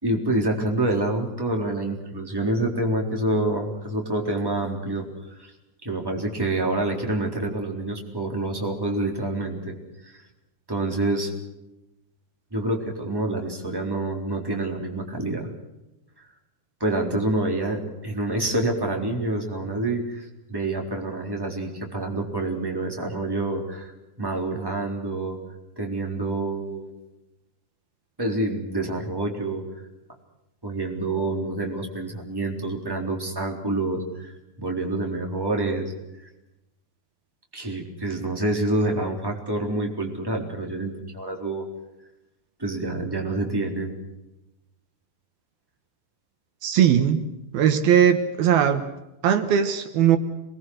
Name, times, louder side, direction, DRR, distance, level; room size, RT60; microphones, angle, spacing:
voice 1, 0.0-5.0 5.4-5.5 5.8-9.7 10.0-10.2 10.7-11.3 12.5-15.5 16.8-20.2 20.5-23.9 24.2-25.4 25.8-26.9 28.2-29.6 30.6-34.3 34.6-35.9 37.5-41.6 42.6-43.9, right 2 dB, 5° right, 1 dB, 3.4 m, -27 dB
voice 2, 46.6-47.2 47.5-48.8 49.2-50.2, right 9 dB, 70° right, 8 dB, 3.0 m, -19 dB
28.0 x 21.0 x 6.4 m, 0.95 s
omnidirectional pair, 4.8 m